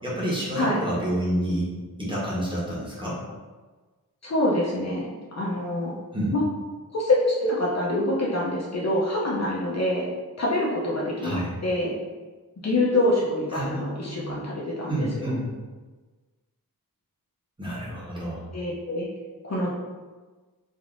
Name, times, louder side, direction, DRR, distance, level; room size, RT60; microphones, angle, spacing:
voice 1, 0.0-1.7 2.0-3.2 6.1-6.3 11.2-11.5 13.5-14.4 14.9-15.4 17.6-18.5, right 1 dB, 15° right, -8 dB, 0.9 m, -29 dB
voice 2, 4.2-5.9 6.3-6.4 6.9-10.1 10.4-11.9 12.6-15.3 18.5-19.1 19.4-19.7, left 1 dB, 45° left, -4 dB, 0.6 m, -25 dB
3.4 x 2.4 x 2.5 m, 1.3 s
wide cardioid pair, 100°, 37 cm